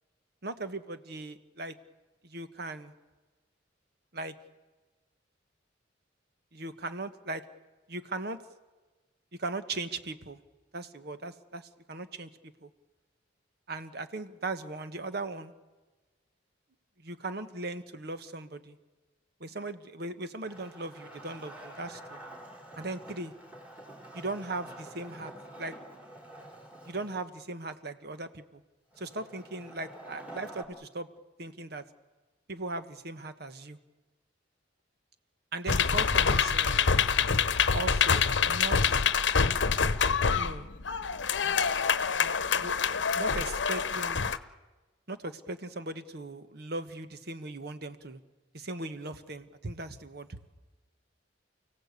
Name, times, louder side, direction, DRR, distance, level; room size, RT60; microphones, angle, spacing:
voice 1, 0.4-1.7 2.2-2.9 4.1-4.3 6.5-7.4 7.9-8.4 9.4-10.4 10.7-12.3 12.6-12.7 13.7-15.5 17.0-18.8 19.4-22.2 22.8-23.3 24.1-25.3 25.6-25.8 26.8-28.6 29.0-31.1 31.4-31.8 32.5-33.8 35.5-37.0 37.7-39.0 40.3-40.7 42.1-44.3 45.1-48.2 48.5-50.4, right 2 dB, 60° right, 10 dB, 1.3 m, -38 dB
Wood, 20.5-27.3 28.9-30.6, right 1 dB, 10° right, 4.0 m, -48 dB
sound 1, 35.7-44.4, left 6 dB, 75° left, 0.9 m, -26 dB
30.0 x 16.5 x 8.2 m, 1.3 s
head